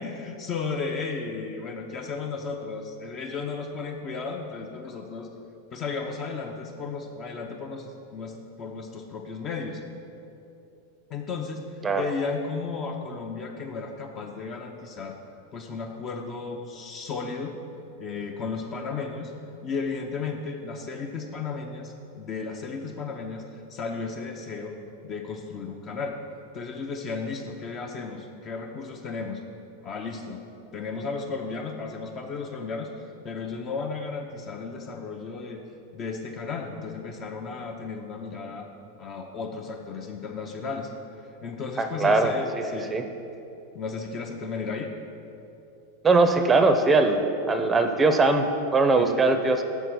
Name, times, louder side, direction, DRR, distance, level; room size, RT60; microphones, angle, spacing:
voice 1, 0.0-5.3 5.7-9.8 11.1-15.2 15.5-17.6 18.0-19.3 19.6-24.8 25.0-26.2 26.5-29.4 29.8-30.4 30.7-35.6 35.9-38.7 39.0-40.9 41.2-42.9 43.7-44.9 49.0-49.2, left 4 dB, 40° left, 2 dB, 0.6 m, -34 dB
voice 2, 41.8-42.6 42.9-43.0 46.0-47.2 47.5-49.6, right 3 dB, 20° right, 7 dB, 0.5 m, -21 dB
6.2 x 4.5 x 6.1 m, 2.8 s
hypercardioid pair, 95°, 0 cm